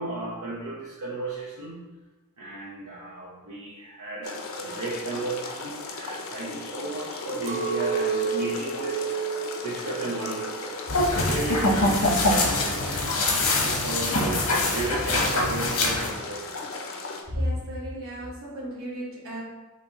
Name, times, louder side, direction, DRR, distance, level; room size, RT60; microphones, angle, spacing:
voice 1, 0.0-1.9 2.4-9.1 9.6-14.5 14.7-16.8, right 2 dB, 85° right, -6 dB, 0.7 m, -34 dB
sound 1, 4.2-17.2, left 3 dB, 65° left, 0.6 m, -37 dB
Chink clink, 7.5-11.8 12.2-12.8, right 5 dB, 30° right, 0.4 m, -31 dB
sound 2, 10.9-16.1, left 2 dB, 85° left, 1.0 m, -24 dB
voice 2, 17.3-19.4, equal, 65° right, -4 dB, 1.3 m, -32 dB
5.8 x 2.8 x 2.9 m, 1.2 s
head